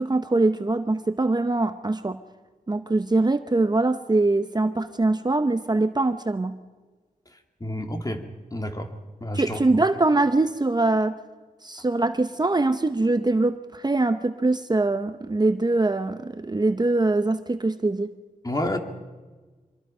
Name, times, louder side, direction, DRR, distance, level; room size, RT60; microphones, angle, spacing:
voice 1, 0.0-2.2 2.7-6.6 9.3-11.1 11.6-18.1, right 2 dB, 30° right, 10 dB, 0.9 m, -23 dB
voice 2, 7.6-8.2 8.5-8.9 9.2-9.6 18.4-18.8, left 1 dB, 25° left, 5 dB, 2.3 m, -29 dB
25.0 x 22.0 x 5.6 m, 1.3 s
wide cardioid pair, 75°, 15 cm